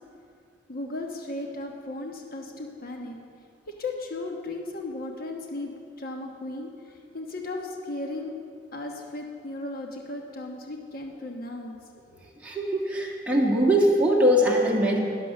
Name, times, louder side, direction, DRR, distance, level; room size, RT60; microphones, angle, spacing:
voice 1, 0.7-3.2 3.7-5.7 6.0-8.3 8.7-11.8 12.1-12.3, left 2 dB, 55° left, 2 dB, 1.2 m, -36 dB
voice 2, 12.4-15.0, equal, 5° right, -4 dB, 1.9 m, -21 dB
11.5 x 11.0 x 6.6 m, 2.3 s
head